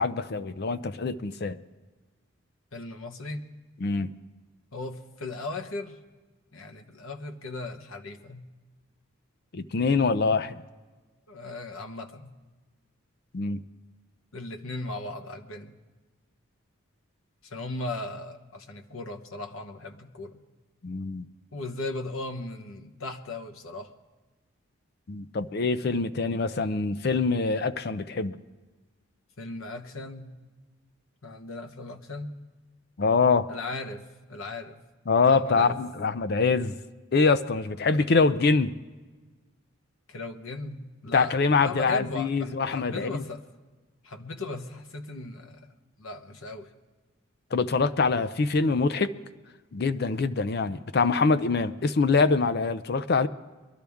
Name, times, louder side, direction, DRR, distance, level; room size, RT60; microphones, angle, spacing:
voice 1, 0.0-1.6 3.8-4.1 9.5-10.6 13.3-13.6 20.8-21.3 25.1-28.4 33.0-33.5 35.1-36.8 37.1-38.7 41.1-43.2 47.5-49.1 49.7-53.3, left 4 dB, 50° left, 13 dB, 0.5 m, -24 dB
voice 2, 2.7-3.5 4.7-6.0 6.5-8.5 11.3-12.3 14.3-15.8 17.4-20.4 21.5-23.9 25.9-26.0 29.4-30.3 31.2-32.3 33.5-34.0 34.3-34.8 35.3-35.8 40.1-41.3 41.6-43.4 44.0-46.7, left 2 dB, 75° left, 5 dB, 1.0 m, -37 dB
22.5 x 12.5 x 3.5 m, 1.3 s
head